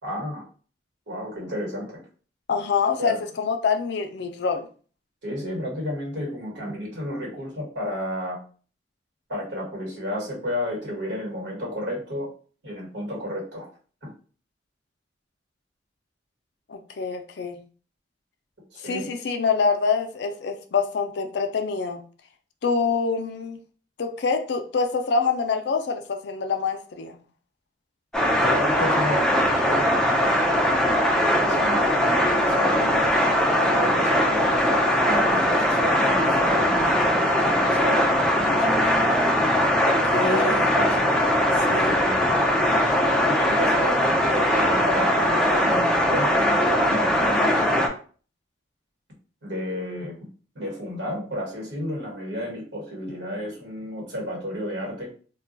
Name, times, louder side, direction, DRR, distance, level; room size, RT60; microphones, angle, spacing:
voice 1, 0.0-0.4 1.1-2.0 3.0-3.2 5.2-8.4 9.3-12.3 12.6-13.7 14.0-14.1 18.7-19.1 28.2-29.9 31.1-33.1 33.6-38.9 40.1-41.1 41.9-42.5 43.1-47.8 49.4-50.2 50.5-55.1, equal, 70° right, -2 dB, 1.4 m, -32 dB
voice 2, 2.5-4.7 16.7-17.6 18.8-22.0 22.6-23.6 24.0-27.2 39.8-40.7 41.7-42.0, left 5 dB, 65° left, 6 dB, 0.4 m, -25 dB
sound 1, 28.1-47.9, equal, 5° left, 0.4 m, -21 dB
2.3 x 2.2 x 3.8 m, 0.41 s
head